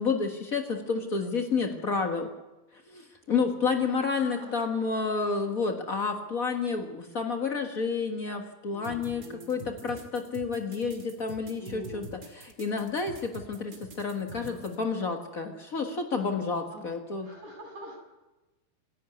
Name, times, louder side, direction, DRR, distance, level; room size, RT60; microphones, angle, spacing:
voice 1, 0.0-2.3 2.9-12.1 12.3-17.3, left 4 dB, 75° left, 3 dB, 0.7 m, -30 dB
voice 2, 1.5-2.3 3.6-3.8 4.2-4.7 8.7-9.7 11.6-12.2 14.3-14.6 16.1-18.0, equal, 65° right, -1 dB, 9.0 m, -46 dB
sound 1, 8.8-14.8, right 3 dB, 40° right, 2.7 m, -46 dB
26.5 x 11.0 x 9.4 m, 1.1 s
omnidirectional pair, 4.1 m